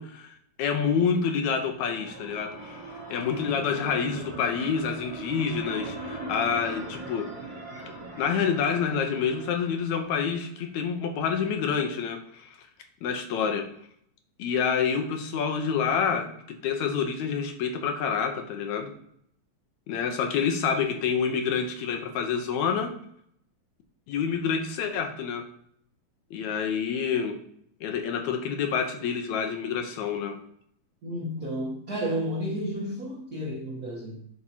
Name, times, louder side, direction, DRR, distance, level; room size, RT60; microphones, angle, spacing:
voice 1, 0.0-7.3 8.2-12.5 13.0-13.7 14.4-18.9 19.9-23.0 24.1-25.5 26.3-27.4 27.8-30.4, left 6 dB, 80° left, 5 dB, 2.2 m, -28 dB
sound 1, 1.6-10.4, right 2 dB, 15° right, 2.4 m, -40 dB
voice 2, 31.0-34.3, equal, 85° right, -2 dB, 0.8 m, -32 dB
11.0 x 4.9 x 2.8 m, 0.69 s
omnidirectional pair, 3.3 m